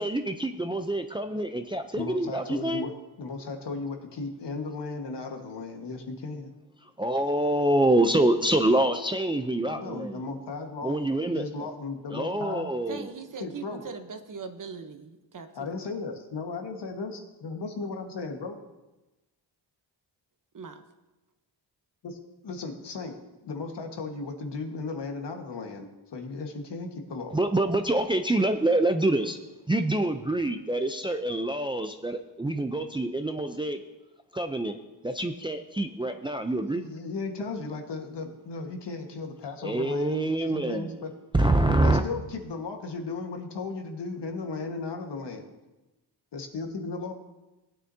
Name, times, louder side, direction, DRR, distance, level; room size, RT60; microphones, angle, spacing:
voice 1, 0.0-2.9 7.0-10.2 10.8-11.4 12.1-13.0 27.3-29.4 29.7-33.8 34.3-34.8 35.0-36.8 39.6-40.9 41.3-42.0, right 1 dB, 10° right, 6 dB, 0.5 m, -26 dB
voice 2, 2.0-6.5 9.6-11.1 11.3-12.7 13.4-13.8 15.5-18.6 22.0-22.2 22.4-27.4 36.7-41.1 41.8-45.4 46.3-47.1, left 3 dB, 70° left, 3 dB, 1.6 m, -36 dB
voice 3, 12.9-15.5 20.5-20.8, right 5 dB, 45° right, 7 dB, 1.0 m, -40 dB
18.5 x 9.3 x 2.8 m, 1.1 s
wide cardioid pair, 105°, 43 cm